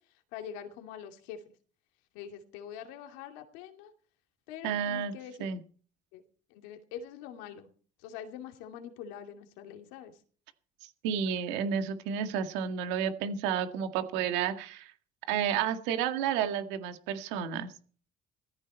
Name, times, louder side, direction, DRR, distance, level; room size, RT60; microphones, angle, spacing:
voice 1, 0.3-1.4 2.1-3.9 4.5-5.5 6.1-6.2 6.5-7.7 8.0-10.1, left 9 dB, 90° left, 5 dB, 2.5 m, -44 dB
voice 2, 4.6-5.1 5.4-5.6 11.0-14.9 15.3-17.7, right 8 dB, 85° right, 8 dB, 2.0 m, -31 dB
18.0 x 14.5 x 4.3 m, 0.43 s
supercardioid pair, 95°, 18 cm